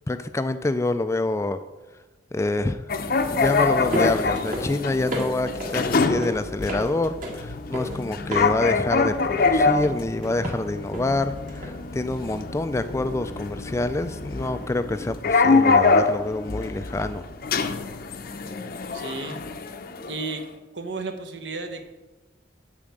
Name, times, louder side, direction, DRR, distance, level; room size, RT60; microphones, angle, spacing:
voice 1, 0.1-1.6 2.3-2.8 3.3-17.2, left 2 dB, 15° left, 11 dB, 0.3 m, -27 dB
sound 1, 2.9-20.4, left 4 dB, 50° left, 0.6 m, -25 dB
sound 2, 3.4-13.3, equal, 45° right, 2.0 m, -36 dB
voice 2, 18.9-19.4 20.0-20.4 20.7-21.9, right 3 dB, 65° right, 6 dB, 1.2 m, -33 dB
8.7 x 4.9 x 7.6 m, 1.2 s
head